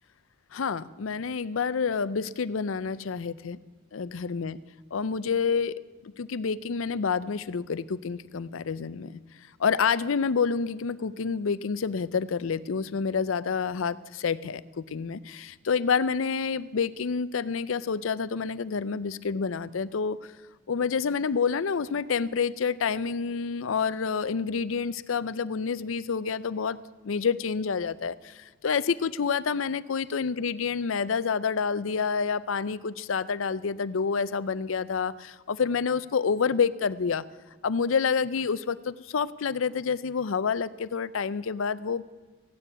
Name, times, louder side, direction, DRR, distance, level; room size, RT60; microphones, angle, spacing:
voice 1, 0.5-3.6 3.9-4.6 4.9-9.2 9.6-20.2 20.7-26.8 27.0-37.2 37.6-42.0, left 5 dB, 85° left, 17 dB, 0.5 m, -28 dB
15.0 x 9.9 x 8.0 m, 1.4 s
head